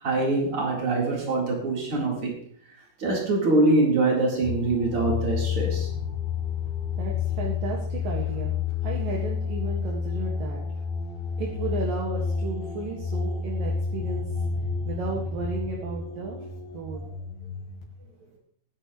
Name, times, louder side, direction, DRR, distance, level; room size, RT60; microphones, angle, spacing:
voice 1, 0.0-2.4 3.0-5.9, right 2 dB, 30° right, -2 dB, 4.6 m, -24 dB
sound 1, 4.4-17.8, left 6 dB, 85° left, 5.2 m, -30 dB
voice 2, 7.0-10.6 11.4-14.3 14.8-16.4 16.7-17.0, right 3 dB, 60° right, -1 dB, 3.3 m, -34 dB
20.5 x 10.5 x 3.2 m, 0.64 s
omnidirectional pair, 5.1 m